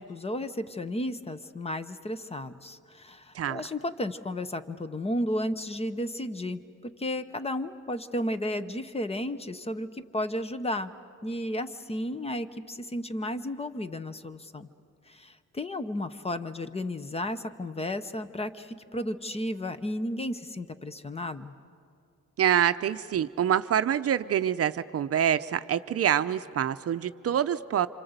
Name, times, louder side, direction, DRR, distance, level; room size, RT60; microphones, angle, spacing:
voice 1, 0.0-10.9 11.2-14.7 15.1-21.5, left 1 dB, 20° left, 12 dB, 0.8 m, -33 dB
voice 2, 3.3-3.7 22.4-27.9, right 9 dB, 50° right, 11 dB, 0.6 m, -26 dB
28.0 x 26.5 x 8.1 m, 2.5 s
cardioid pair, 135°, 30 cm